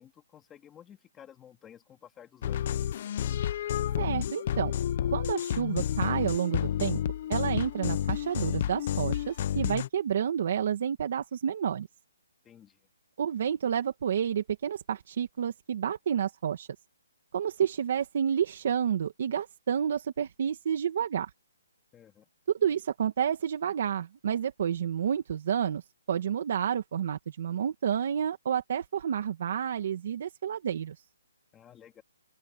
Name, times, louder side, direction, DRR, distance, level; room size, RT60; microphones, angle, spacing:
voice 1, 0.0-2.7 12.4-12.8 21.9-22.3 31.5-32.0, left 9 dB, 10° left, 2.4 m, -53 dB
sound 1, 2.4-9.9, left 10 dB, 30° left, 0.8 m, -30 dB
voice 2, 4.0-4.7 5.1-7.0 7.3-11.9 13.2-16.7 17.3-21.3 22.5-31.0, right 8 dB, 40° right, 1.8 m, -30 dB
hypercardioid pair, 175°, 0 cm